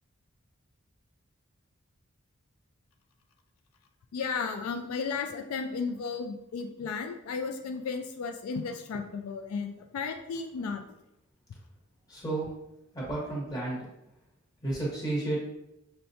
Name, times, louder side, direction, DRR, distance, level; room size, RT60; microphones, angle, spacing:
voice 1, 4.1-10.8, left 5 dB, 85° left, 5 dB, 0.3 m, -34 dB
voice 2, 12.1-12.5 12.9-13.9 14.6-15.4, right 2 dB, 15° left, -5 dB, 1.1 m, -32 dB
5.6 x 2.2 x 2.6 m, 0.87 s
head